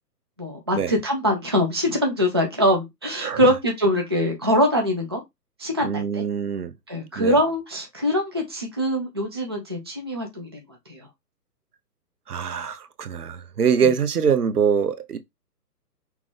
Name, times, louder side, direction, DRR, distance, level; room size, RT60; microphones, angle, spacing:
voice 1, 0.4-5.2 5.6-6.2 6.9-11.0, equal, 15° right, 0.4 m, -23 dB
voice 2, 3.2-3.5 5.8-6.7 7.2-7.4 12.3-15.2, right 7 dB, 65° right, 0.9 m, -23 dB
5.9 x 2.3 x 3.5 m
figure-of-eight pair, 130°, 49 cm